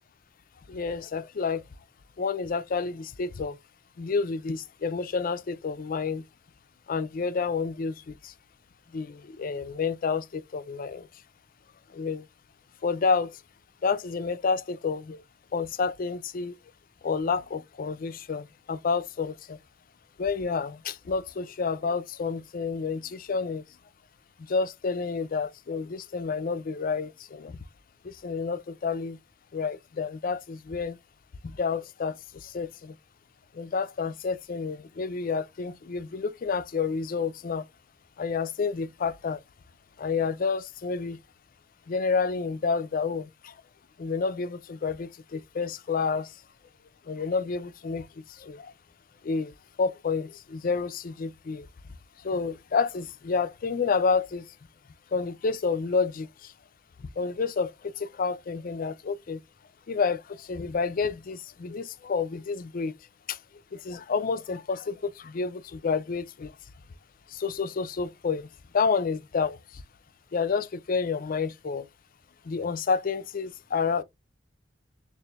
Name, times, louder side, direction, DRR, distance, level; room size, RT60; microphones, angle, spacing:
voice 1, 0.7-1.6 2.2-3.6 4.0-6.2 6.9-8.3 8.9-11.1 11.9-12.3 12.8-13.4 13.8-15.2 15.5-16.6 17.0-19.6 20.2-23.6 24.4-27.6 28.0-29.2 29.5-31.0 31.4-32.9 33.5-37.7 38.2-39.4 40.0-41.2 41.9-43.5 44.0-46.3 47.1-48.7 49.2-49.5 49.8-51.7 52.2-54.5 55.1-56.5 57.2-59.4 59.9-62.9 63.3-63.4 63.7-66.5 67.3-68.5 68.7-69.8 70.3-71.9 72.4-74.0, left 5 dB, 45° left, 0.4 m, -29 dB
6.6 x 2.6 x 2.3 m
head